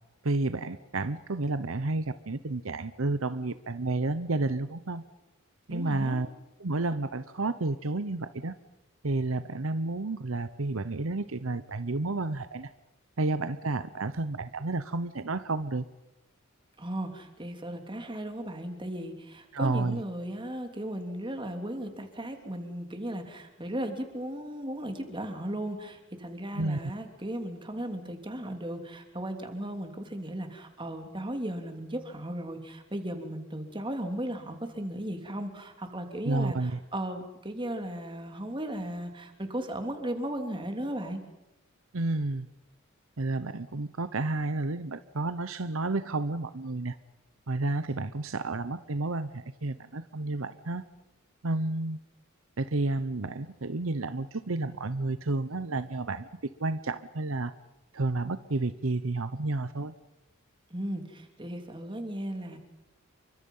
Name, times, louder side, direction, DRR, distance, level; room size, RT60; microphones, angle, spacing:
voice 1, 0.2-5.0 5.7-6.3 6.6-8.5 9.0-12.7 13.2-15.8 19.5-20.0 26.6-26.8 36.2-36.8 41.9-42.5 43.2-47.0 47.5-50.8 51.4-52.0 52.6-56.3 56.6-57.5 57.9-59.9, right 2 dB, 75° right, 13 dB, 0.9 m, -31 dB
voice 2, 5.7-6.2 16.8-41.2 60.7-62.6, right 1 dB, 25° right, 5 dB, 3.2 m, -36 dB
29.0 x 24.5 x 5.6 m, 1.0 s
head